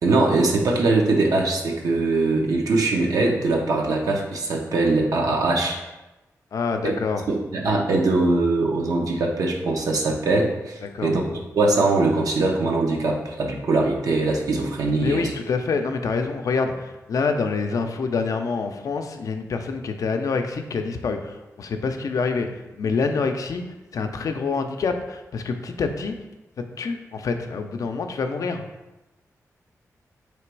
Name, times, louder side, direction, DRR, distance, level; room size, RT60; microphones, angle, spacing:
voice 1, 0.0-5.8 6.8-6.9 7.3-11.2 11.6-15.3, right 2 dB, 75° right, 0 dB, 0.7 m, -22 dB
voice 2, 6.5-7.3 10.8-11.2 15.0-22.5 22.7-23.6 23.9-26.1 26.6-28.6, left 4 dB, 70° left, 6 dB, 0.4 m, -26 dB
3.2 x 3.0 x 4.5 m, 1.0 s
cardioid pair, 75°, 6 cm